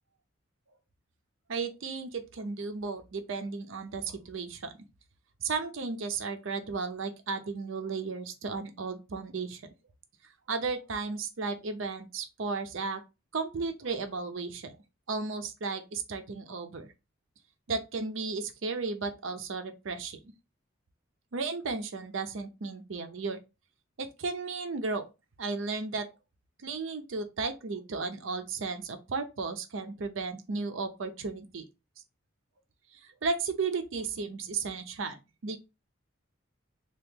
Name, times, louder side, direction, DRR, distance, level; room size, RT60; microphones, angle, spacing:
voice 1, 1.5-4.7 5.4-9.6 10.5-13.0 13.3-14.7 15.1-16.9 17.7-20.2 21.3-23.4 24.0-25.0 25.4-26.1 26.6-31.6 32.9-35.6, right 4 dB, 75° right, 0.6 m, -34 dB
2.9 x 2.4 x 3.5 m
head